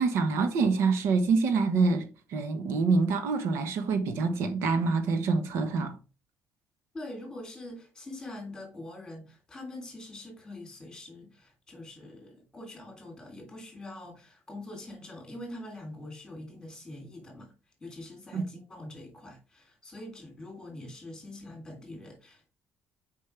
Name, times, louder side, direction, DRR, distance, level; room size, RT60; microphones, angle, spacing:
voice 1, 0.0-6.0 18.3-18.4, right 4 dB, 70° right, 1.1 m, -26 dB
voice 2, 6.9-17.5 17.8-22.5, left 1 dB, 10° left, 3.2 m, -44 dB
6.8 x 5.3 x 3.4 m
cardioid pair, 165°, 5 cm